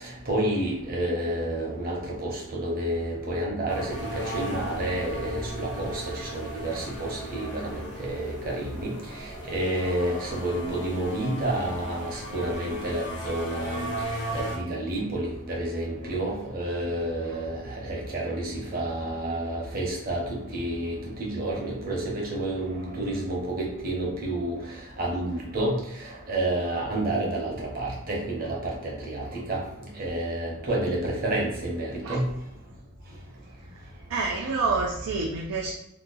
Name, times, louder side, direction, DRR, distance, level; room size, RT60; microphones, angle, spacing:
voice 1, 0.0-29.6 29.9-32.3, right 1 dB, 40° right, -3 dB, 0.9 m, -30 dB
sound 1, 3.7-14.6, right 1 dB, 50° left, 0.5 m, -36 dB
voice 2, 34.1-35.7, right 4 dB, 90° right, -1 dB, 0.4 m, -27 dB
2.8 x 2.3 x 3.9 m, 0.88 s
head